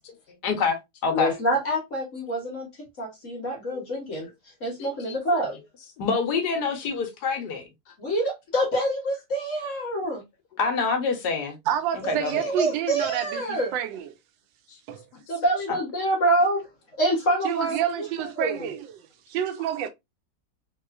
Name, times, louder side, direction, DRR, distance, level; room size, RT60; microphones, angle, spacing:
voice 1, 0.4-1.3 3.7-3.8 4.8-5.1 6.0-7.7 10.6-11.6 12.1-12.5 14.7-14.8, left 5 dB, 65° left, 1.3 m, -27 dB
voice 2, 1.1-5.6 8.0-10.2 12.0-13.7 15.3-16.7 17.0-18.7, right 1 dB, 50° left, 1.2 m, -26 dB
voice 3, 11.7-14.1 14.9-15.0 17.4-18.9 19.3-19.9, right 10 dB, 90° right, 1.3 m, -28 dB
3.3 x 2.9 x 2.3 m
omnidirectional pair, 2.0 m